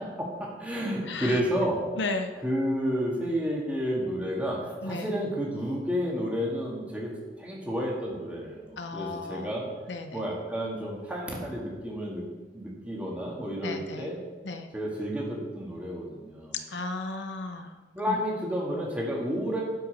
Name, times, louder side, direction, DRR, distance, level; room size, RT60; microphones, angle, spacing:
voice 1, 0.4-1.8 2.4-9.7 10.1-12.2 12.5-14.2 14.7-16.6 17.9-19.6, equal, 10° right, -4 dB, 2.1 m, -31 dB
voice 2, 1.1-1.4 2.0-2.3 4.8-5.1 8.8-9.5 9.9-10.2 13.6-14.1 14.4-14.7 16.7-17.8 18.1-18.2, left 3 dB, 80° left, 6 dB, 0.8 m, -34 dB
12.0 x 5.7 x 5.4 m, 1.3 s
head